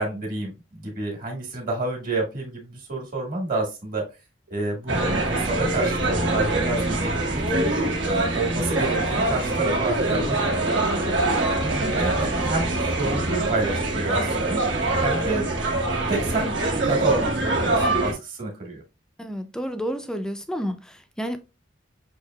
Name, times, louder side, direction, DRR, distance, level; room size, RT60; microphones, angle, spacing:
voice 1, 0.0-4.0 4.5-7.4 8.0-12.7 13.0-14.6 15.0-15.6 16.1-18.8, right 2 dB, 45° right, 1.5 m, -29 dB
sound 1, 4.9-18.1, right 2 dB, 75° right, 1.2 m, -24 dB
voice 2, 19.2-21.4, equal, 5° left, 0.4 m, -30 dB
6.3 x 2.8 x 2.2 m
head